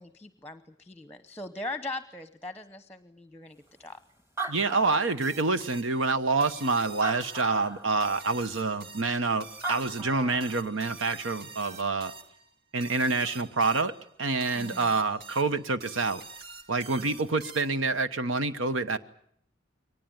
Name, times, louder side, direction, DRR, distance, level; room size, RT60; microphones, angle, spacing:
voice 1, 0.0-4.0 14.5-14.9, left 2 dB, 10° left, 11 dB, 0.9 m, -40 dB
Animal, 3.9-4.0 4.2-5.6 6.3-6.4 6.9-7.9 9.3-9.4 9.6-10.6, right 3 dB, 15° right, 1.7 m, -36 dB
voice 2, 4.5-12.1 12.7-13.9 14.2-16.2 16.7-19.0, right 3 dB, 80° right, 11 dB, 1.1 m, -27 dB
sound 1, 5.2-18.0, right 4 dB, 55° right, 1.6 m, -47 dB
23.0 x 19.5 x 9.4 m, 0.67 s
head